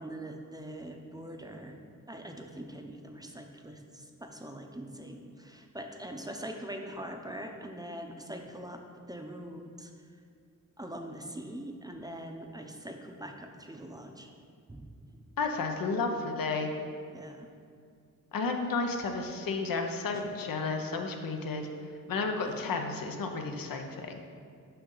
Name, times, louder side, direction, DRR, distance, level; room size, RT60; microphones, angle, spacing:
voice 1, 0.0-1.8 2.1-9.9 10.8-14.3 14.7-15.2 17.1-17.5 22.4-22.8, right 1 dB, 10° right, 3 dB, 0.6 m, -43 dB
voice 2, 15.4-16.7 18.3-21.7 22.1-24.2, left 4 dB, 80° left, 4 dB, 0.8 m, -32 dB
6.7 x 5.4 x 3.8 m, 2.3 s
cardioid pair, 75°, 34 cm